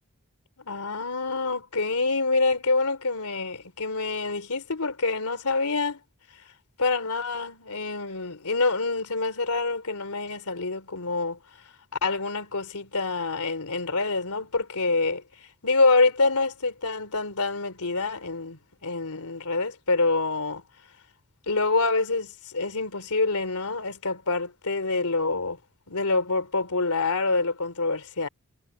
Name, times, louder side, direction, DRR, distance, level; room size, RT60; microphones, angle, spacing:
voice 1, 0.6-6.0 6.8-11.4 12.0-15.2 15.6-20.6 21.5-25.6 25.9-28.3, left 3 dB, 90° left, 3.2 m, -26 dB
head